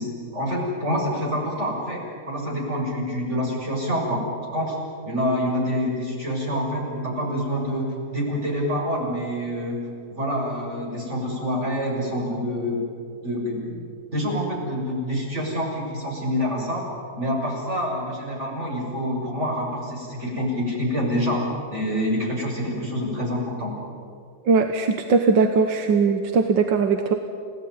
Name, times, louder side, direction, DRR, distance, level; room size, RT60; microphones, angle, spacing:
voice 1, 0.0-4.3 4.5-4.8 5.0-9.8 10.1-12.8 13.2-13.8 14.1-16.8 17.2-23.8, equal, 40° right, -2 dB, 7.0 m, -27 dB
voice 2, 24.5-27.1, right 4 dB, 85° right, 6 dB, 1.9 m, -20 dB
30.0 x 17.5 x 9.6 m, 2.4 s
omnidirectional pair, 1.9 m